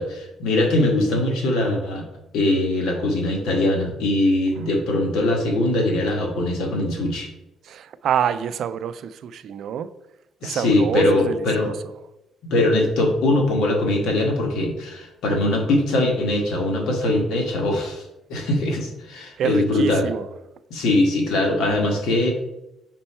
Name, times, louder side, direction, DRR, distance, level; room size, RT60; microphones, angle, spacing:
voice 1, 0.0-2.0 2.3-7.3 10.4-11.7 12.4-18.0 18.3-20.1 20.7-22.3, left 1 dB, 90° left, 1.6 m, -21 dB
voice 2, 7.7-9.9 10.4-11.7 19.4-20.3, right 9 dB, 65° right, 0.4 m, -27 dB
5.4 x 4.4 x 4.3 m
cardioid pair, 120°, 0 cm